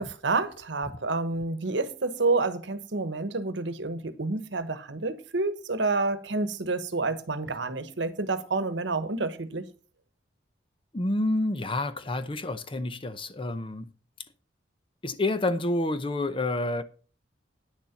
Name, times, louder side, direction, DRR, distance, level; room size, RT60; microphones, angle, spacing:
voice 1, 0.0-9.7, right 3 dB, 70° right, 1.1 m, -29 dB
voice 2, 10.9-13.9 15.0-16.8, left 2 dB, 30° left, 0.7 m, -28 dB
9.8 x 6.7 x 5.8 m
head